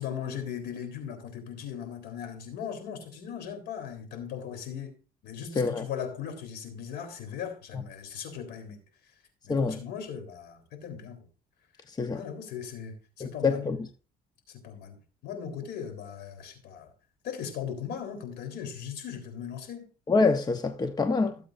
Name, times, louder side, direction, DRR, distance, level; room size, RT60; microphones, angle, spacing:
voice 1, 0.0-5.0 5.2-8.8 9.4-11.3 12.1-13.7 14.5-15.0 15.2-16.9 17.2-19.9 21.2-21.3, left 8 dB, 75° left, 3.7 m, -38 dB
voice 2, 13.2-13.8 20.1-21.4, left 4 dB, 25° left, 0.9 m, -25 dB
17.5 x 7.9 x 2.6 m
cardioid pair, 110°, 17 cm